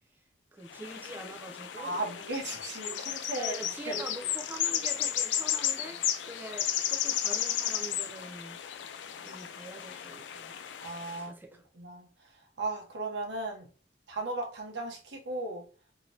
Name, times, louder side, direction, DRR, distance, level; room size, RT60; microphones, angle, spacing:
voice 1, 0.5-2.0 3.4-8.6 9.2-10.6 11.2-11.6, right 1 dB, 10° right, 0.4 m, -44 dB
sound 1, 0.7-11.2, left 10 dB, 90° left, 0.4 m, -34 dB
voice 2, 1.8-3.5 3.8-4.0 10.8-11.3 11.7-12.3 12.6-13.7 14.1-15.7, right 2 dB, 80° right, 0.9 m, -36 dB
2.9 x 2.8 x 2.7 m
head